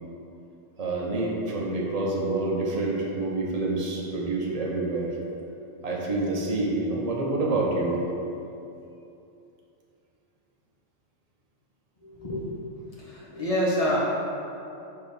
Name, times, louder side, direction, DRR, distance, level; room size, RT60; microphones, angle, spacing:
voice 1, 0.8-5.2 5.8-8.0, right 2 dB, 35° right, -3 dB, 1.0 m, -27 dB
voice 2, 12.0-12.5 13.0-14.0, equal, 30° left, -7 dB, 1.5 m, -27 dB
4.8 x 4.6 x 5.5 m, 2.7 s
omnidirectional pair, 1.2 m